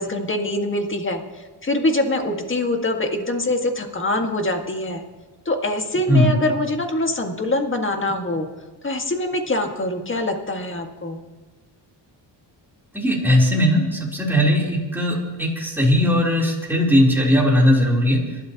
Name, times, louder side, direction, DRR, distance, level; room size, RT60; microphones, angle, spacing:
voice 1, 0.0-5.0 5.4-8.5 8.8-11.2, left 1 dB, 30° left, 4 dB, 1.8 m, -24 dB
voice 2, 12.9-18.2, equal, 5° right, -3 dB, 3.6 m, -18 dB
27.0 x 12.0 x 3.0 m, 1.2 s
cardioid pair, 85°, 42 cm